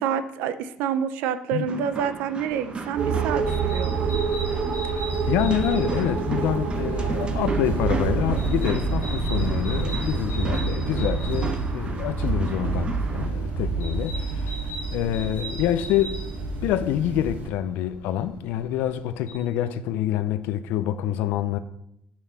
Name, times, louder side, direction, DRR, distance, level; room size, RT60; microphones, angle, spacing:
voice 1, 0.0-4.0, right 8 dB, 85° right, 0.6 m, -28 dB
sound 1, 1.7-13.3, right 3 dB, 35° right, 1.0 m, -36 dB
sound 2, 2.5-19.3, equal, 70° left, 1.9 m, -42 dB
sound 3, 3.0-17.5, right 4 dB, 60° right, 1.2 m, -27 dB
voice 2, 4.8-14.6 14.9-21.6, left 11 dB, 85° left, 0.5 m, -27 dB
6.4 x 6.0 x 5.5 m
cardioid pair, 90°, 3 cm